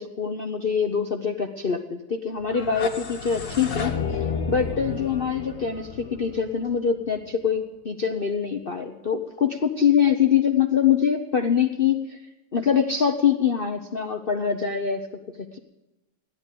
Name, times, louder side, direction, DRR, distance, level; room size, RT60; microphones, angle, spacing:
voice 1, 0.0-12.2 12.5-15.0 15.5-15.6, left 7 dB, 65° left, 4 dB, 0.5 m, -24 dB
sound 1, 2.4-7.3, left 5 dB, 40° left, 1.8 m, -31 dB
16.0 x 11.5 x 6.7 m, 1.0 s
omnidirectional pair, 2.3 m